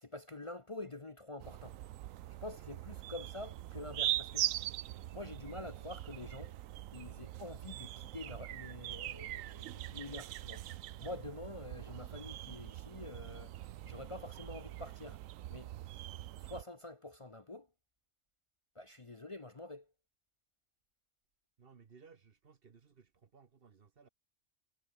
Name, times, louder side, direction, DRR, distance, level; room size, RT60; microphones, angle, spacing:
voice 1, 0.0-1.8 2.4-4.5 5.1-6.5 6.9-10.7 11.0-15.2 15.5-15.7 16.4-17.7 18.8-19.9, left 2 dB, 30° left, 0.9 m, -47 dB
sound 1, 1.4-16.6, right 14 dB, 90° right, 1.0 m, -42 dB
voice 2, 21.6-24.1, right 5 dB, 50° right, 1.2 m, -61 dB
omnidirectional pair, 1.3 m